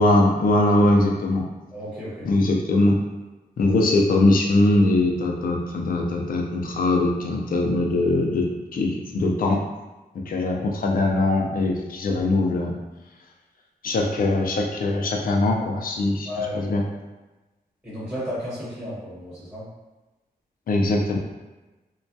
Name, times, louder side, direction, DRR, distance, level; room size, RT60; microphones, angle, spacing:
voice 1, 0.0-1.4 2.2-3.0 3.6-9.6 10.3-12.7 13.8-16.3 16.5-16.8 20.7-21.2, left 2 dB, 60° left, 0 dB, 0.4 m, -21 dB
voice 2, 1.7-2.3 16.2-16.8 17.8-19.6, left 1 dB, 5° right, -12 dB, 1.2 m, -33 dB
2.2 x 2.2 x 2.6 m, 1.1 s
wide cardioid pair, 140°, 16 cm